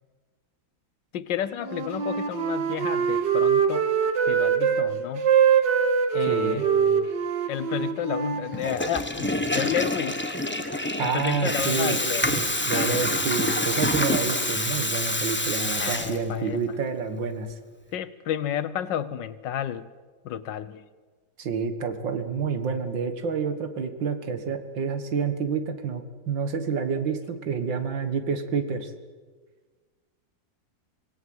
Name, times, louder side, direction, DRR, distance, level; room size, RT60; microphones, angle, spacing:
voice 1, 1.1-3.9 4.3-5.3 6.1-7.1 7.5-10.3 10.8-12.3 12.7-13.0 15.7-16.6 17.9-19.9 20.2-20.9, left 10 dB, 80° left, 15 dB, 1.6 m, -31 dB
Wind instrument woodwind instrument, 1.6-4.9 5.2-8.9, right 7 dB, 70° right, 2.2 m, -23 dB
voice 2, 6.3-6.7 11.0-12.0 12.3-17.6 21.4-28.9, right 5 dB, 90° right, 9 dB, 2.4 m, -28 dB
Water tap faucet / Toilet flush, 8.5-16.5, left 1 dB, 5° left, 1.2 m, -27 dB
25.5 x 19.0 x 7.9 m, 1.4 s
omnidirectional pair, 2.0 m